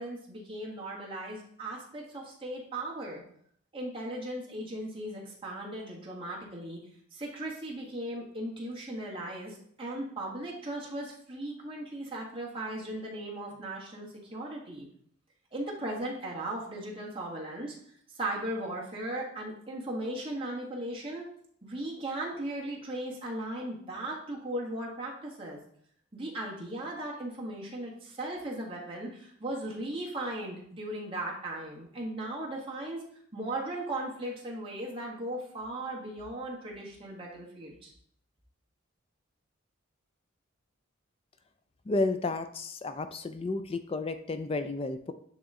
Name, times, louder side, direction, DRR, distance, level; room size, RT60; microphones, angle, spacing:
voice 1, 0.0-3.2 3.7-6.8 7.1-14.9 15.5-17.7 18.2-21.2 21.6-25.6 26.1-33.0 33.3-37.9, right 1 dB, 25° right, -3 dB, 1.4 m, -37 dB
voice 2, 41.9-45.1, left 2 dB, 25° left, 9 dB, 0.3 m, -32 dB
8.7 x 3.1 x 3.7 m, 0.64 s
head